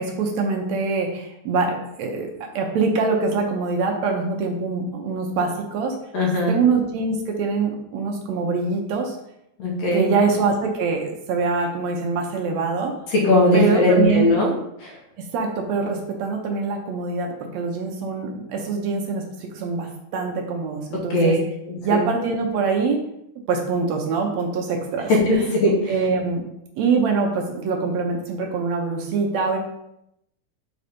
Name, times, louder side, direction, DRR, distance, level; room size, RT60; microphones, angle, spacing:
voice 1, 0.0-2.3 2.6-6.0 6.5-9.2 9.9-12.9 13.5-14.3 15.3-21.4 21.8-23.0 23.5-25.5 25.9-26.4 26.8-29.6, right 4 dB, 70° right, 2 dB, 2.0 m, -24 dB
voice 2, 6.1-6.6 9.6-10.1 13.1-14.5 14.8-14.9 21.1-21.3 21.7-22.0 25.1-25.9, left 1 dB, 60° left, -3 dB, 2.5 m, -19 dB
5.9 x 4.0 x 5.1 m, 0.80 s
omnidirectional pair, 3.4 m